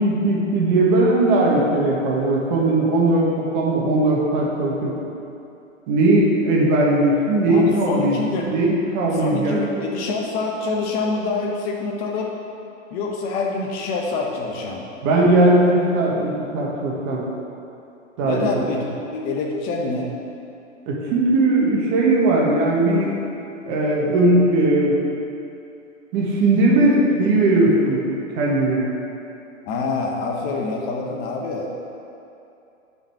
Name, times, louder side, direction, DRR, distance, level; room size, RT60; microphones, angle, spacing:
voice 1, 0.0-4.9 5.9-8.2 8.5-9.9 15.0-17.2 18.2-18.4 20.9-23.2 23.7-25.0 26.1-28.0 28.3-28.9, right 2 dB, 35° right, -3 dB, 1.5 m, -18 dB
voice 2, 7.5-8.5 9.1-12.3 12.9-14.9 18.2-20.1 29.7-31.7, left 3 dB, 25° left, 0 dB, 0.8 m, -26 dB
5.3 x 5.0 x 6.3 m, 2.7 s
hypercardioid pair, 140°, 39 cm